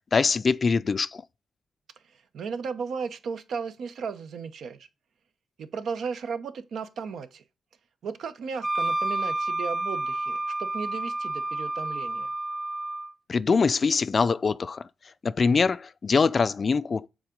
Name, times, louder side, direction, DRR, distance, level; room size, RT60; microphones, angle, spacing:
voice 1, 0.1-1.2 13.3-14.8 15.2-17.1, left 5 dB, 45° left, 0.4 m, -23 dB
voice 2, 2.3-4.9 5.6-7.4 8.0-12.3, right 6 dB, 75° right, 0.8 m, -35 dB
Wind instrument woodwind instrument, 8.6-13.1, right 2 dB, 25° right, 0.5 m, -30 dB
7.2 x 3.9 x 5.1 m
cardioid pair, 70°, 0 cm